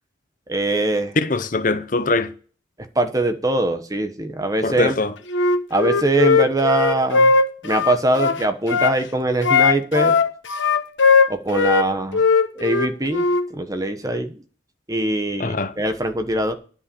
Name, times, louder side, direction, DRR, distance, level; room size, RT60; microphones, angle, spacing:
voice 1, 0.5-1.1 2.9-5.0 5.7-7.3 7.6-10.2 11.3-12.2 12.6-13.2 13.5-14.4 14.9-16.5, right 2 dB, 20° right, 1.0 m, -22 dB
voice 2, 1.2-2.3 4.6-5.1 15.4-15.7, left 3 dB, 45° left, 0.8 m, -22 dB
Wind instrument woodwind instrument, 5.3-9.0 9.4-11.9 12.1-13.4, left 4 dB, 75° left, 1.2 m, -18 dB
10.5 x 5.8 x 7.0 m
head